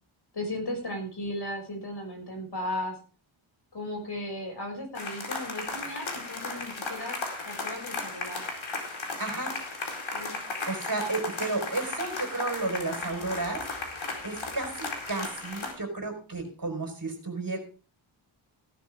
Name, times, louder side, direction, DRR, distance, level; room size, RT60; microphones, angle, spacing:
voice 1, 0.3-3.0 3.7-8.4 10.1-10.4, left 1 dB, 55° left, 2 dB, 6.5 m, -36 dB
sound 1, 4.9-15.7, left 3 dB, 70° left, 4.3 m, -35 dB
voice 2, 9.2-9.6 10.7-13.6 14.2-17.6, right 3 dB, 45° right, 4 dB, 4.7 m, -32 dB
16.5 x 11.5 x 3.6 m, 0.36 s
wide cardioid pair, 85°, 48 cm